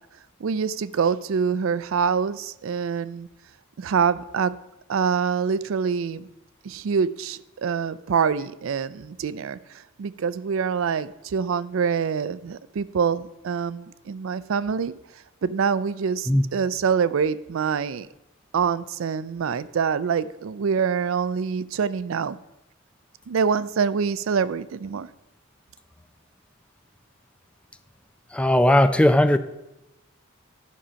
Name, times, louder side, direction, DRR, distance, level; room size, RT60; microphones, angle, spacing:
voice 1, 0.4-3.3 3.8-4.6 4.9-6.3 6.6-14.9 15.4-18.1 18.5-22.4 23.3-25.1, right 6 dB, 70° right, 17 dB, 0.4 m, -25 dB
voice 2, 28.3-29.4, left 1 dB, 5° left, 11 dB, 0.4 m, -17 dB
11.5 x 5.6 x 5.1 m, 0.93 s
head